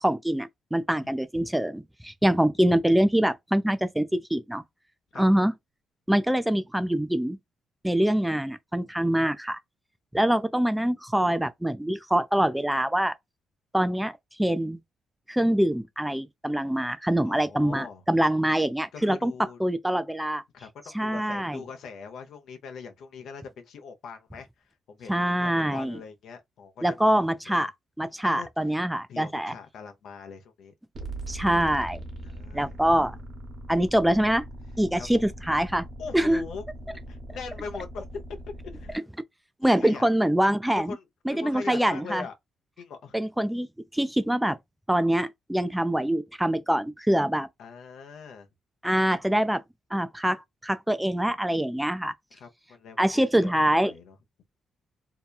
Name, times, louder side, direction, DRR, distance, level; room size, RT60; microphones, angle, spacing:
voice 1, 0.0-4.6 5.2-5.5 6.1-7.4 7.8-9.6 10.1-13.1 13.7-14.1 14.4-14.8 15.3-19.3 19.6-20.4 20.9-21.6 25.1-26.0 26.8-27.7 28.0-29.5 31.3-32.0 32.5-33.1 33.7-34.4 34.8-35.9 36.1-36.4 39.6-41.0 41.3-42.3 43.1-43.7 43.9-44.6 44.9-47.5 48.8-49.6 49.9-52.1 53.0-53.9, right 1 dB, 5° right, 0.4 m, -24 dB
voice 2, 17.2-18.0 18.9-19.6 20.5-24.5 24.9-27.6 28.2-28.8 29.1-30.7 32.2-33.2 35.0-35.2 36.0-38.2 38.6-39.0 39.7-40.1 40.8-42.3 42.8-43.2 47.6-48.5 52.3-54.2, left 5 dB, 70° left, 0.7 m, -42 dB
sound 1, 30.9-39.0, right 1 dB, 50° right, 1.1 m, -40 dB
2.8 x 2.3 x 2.3 m
cardioid pair, 90°, 0 cm